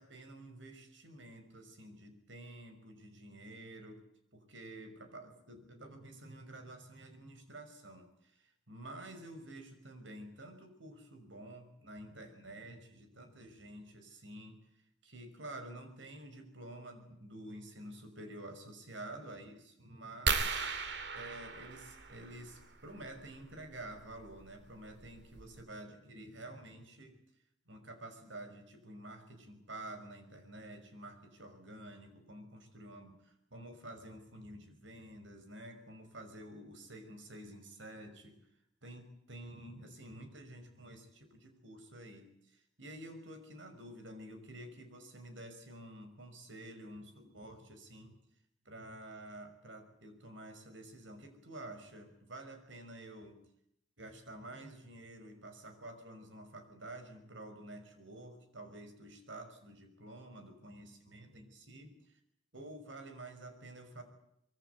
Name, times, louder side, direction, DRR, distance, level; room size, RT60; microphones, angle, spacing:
voice 1, 0.0-4.0 4.3-14.6 15.0-20.6 21.1-27.2 27.7-38.4 38.8-48.1 48.6-53.4 54.0-62.2 62.5-64.0, right 1 dB, 85° right, 7 dB, 6.0 m, -50 dB
sound 1, 20.3-22.6 24.2-24.4 25.0-25.1 25.4-25.6, right 4 dB, 60° right, 2.4 m, -35 dB
24.5 x 23.0 x 8.4 m, 0.76 s
head